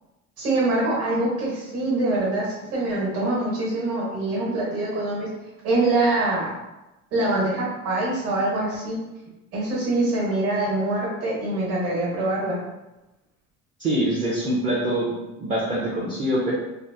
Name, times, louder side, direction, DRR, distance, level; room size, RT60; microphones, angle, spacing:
voice 1, 0.4-5.3 5.6-6.6 7.1-9.0 9.5-12.6, right 2 dB, 45° right, -6 dB, 1.1 m, -24 dB
voice 2, 13.8-15.1 15.4-16.5, right 1 dB, 25° right, -6 dB, 0.5 m, -24 dB
3.4 x 2.0 x 2.6 m, 0.98 s
cardioid pair, 165°, 33 cm